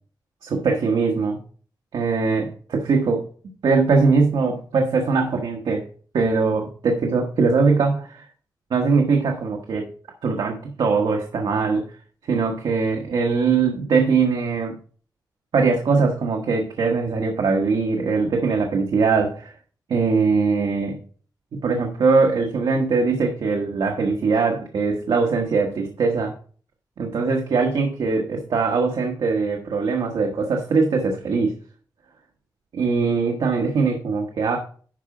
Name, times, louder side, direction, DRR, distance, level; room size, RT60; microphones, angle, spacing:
voice 1, 0.4-1.4 1.9-3.2 3.6-5.8 6.1-8.2 8.7-9.9 10.2-11.8 12.3-14.8 15.5-19.5 19.9-21.0 21.6-26.3 27.0-31.5 32.7-34.6, right 4 dB, 85° right, 1 dB, 1.3 m, -21 dB
11.0 x 4.9 x 4.9 m, 0.44 s
wide cardioid pair, 165°, 8 cm